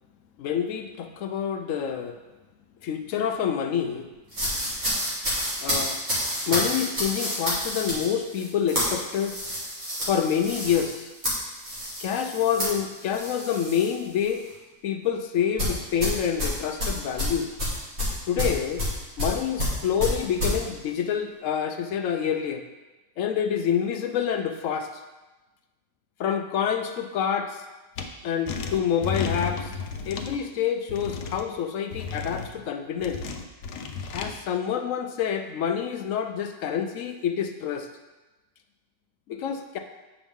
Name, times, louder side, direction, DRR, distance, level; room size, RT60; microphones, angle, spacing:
voice 1, 0.4-2.2 2.8-4.1 5.6-6.0 6.5-9.4 10.1-11.1 12.0-14.5 14.8-17.5 18.3-18.8 19.2-22.6 23.2-24.9 26.2-27.6 28.2-29.8 30.1-33.2 34.1-37.9 39.3-39.8, left 8 dB, 70° left, 6 dB, 0.8 m, -27 dB
Plastic Bag Sound Effects, 4.3-13.9 14.2-14.5 15.6-20.6, equal, 45° right, 2.3 m, -29 dB
sound 1, 28.0-28.1 28.5-30.4 30.9-31.4 31.9-32.5 33.0-34.3, left 5 dB, 85° left, 1.2 m, -33 dB
8.0 x 5.9 x 3.5 m, 1.1 s
omnidirectional pair, 1.7 m